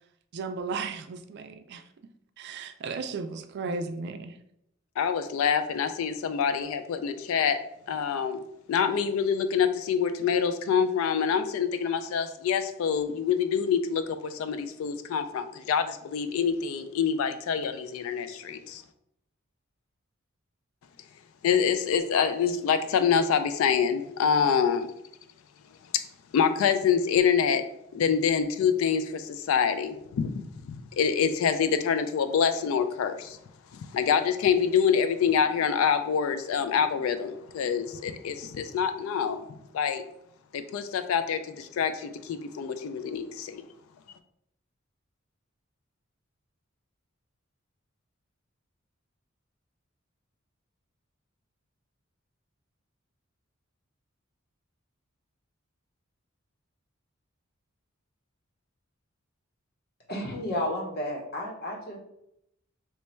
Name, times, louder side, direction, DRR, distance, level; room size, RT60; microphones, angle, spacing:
voice 1, 0.3-1.8 2.4-4.4, right 4 dB, 55° right, 9 dB, 0.3 m, -35 dB
voice 2, 5.0-7.6 7.9-8.4 8.7-18.8 21.4-24.9 26.3-27.6 27.9-33.4 33.7-39.4 39.7-40.0 40.5-43.6, left 7 dB, 90° left, 9 dB, 0.3 m, -26 dB
voice 3, 60.1-62.0, left 1 dB, 50° left, 0 dB, 0.9 m, -32 dB
3.0 x 2.2 x 4.2 m, 0.77 s
head